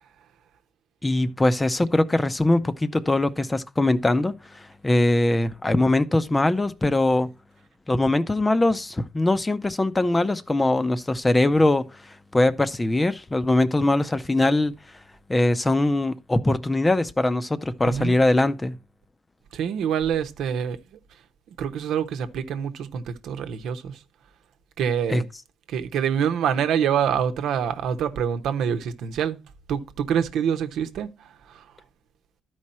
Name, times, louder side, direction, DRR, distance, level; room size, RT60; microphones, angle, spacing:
voice 1, 1.0-7.3 7.9-14.7 15.3-18.8 25.1-25.2, left 2 dB, 15° left, 0.7 m, -22 dB
voice 2, 19.5-20.8 21.6-24.0 24.8-25.3 25.7-29.4 29.7-31.6, right 8 dB, 80° right, 0.9 m, -26 dB
12.0 x 4.8 x 4.3 m
cardioid pair, 90°, 0 cm